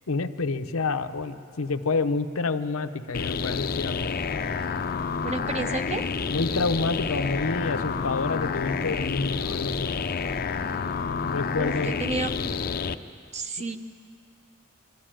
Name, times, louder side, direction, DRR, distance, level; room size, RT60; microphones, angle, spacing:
voice 1, 0.1-4.2 6.3-9.9 11.3-11.9, left 3 dB, 90° left, 8 dB, 0.8 m, -28 dB
sound 1, 3.1-13.0, left 5 dB, 45° left, 0.5 m, -29 dB
voice 2, 5.2-6.0 11.6-12.3 13.3-13.8, right 3 dB, 35° right, 8 dB, 0.8 m, -31 dB
23.5 x 12.5 x 8.9 m, 2.5 s
head